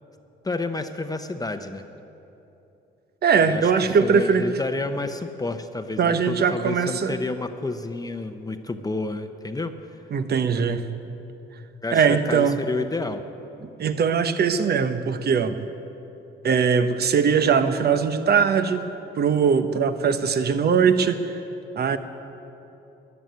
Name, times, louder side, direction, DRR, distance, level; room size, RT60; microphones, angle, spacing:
voice 1, 0.4-1.8 3.4-3.7 4.0-10.0 11.8-13.2, left 3 dB, 20° left, 7 dB, 0.8 m, -30 dB
voice 2, 3.2-4.4 6.0-7.2 10.1-10.8 11.9-12.6 13.8-15.6 16.4-18.8 19.2-21.4 21.7-22.0, right 6 dB, 55° right, 10 dB, 1.0 m, -21 dB
14.0 x 11.0 x 9.3 m, 2.9 s
cardioid pair, 90°, 20 cm